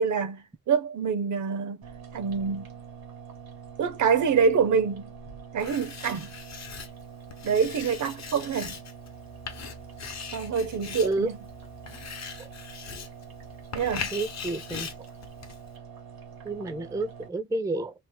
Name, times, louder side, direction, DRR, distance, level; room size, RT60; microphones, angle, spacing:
voice 1, 0.0-1.8 2.1-2.7 3.8-5.1 5.5-6.3 7.4-8.8 10.3-11.4 13.7-14.1, right 6 dB, 55° right, 0.6 m, -26 dB
sound 1, 1.8-17.3, right 6 dB, 90° right, 1.1 m, -45 dB
Writing, 5.6-15.8, left 6 dB, 50° left, 0.7 m, -40 dB
voice 2, 14.1-14.9 16.5-17.9, right 2 dB, 10° right, 0.4 m, -30 dB
2.9 x 2.0 x 3.2 m
wide cardioid pair, 135°, 35 cm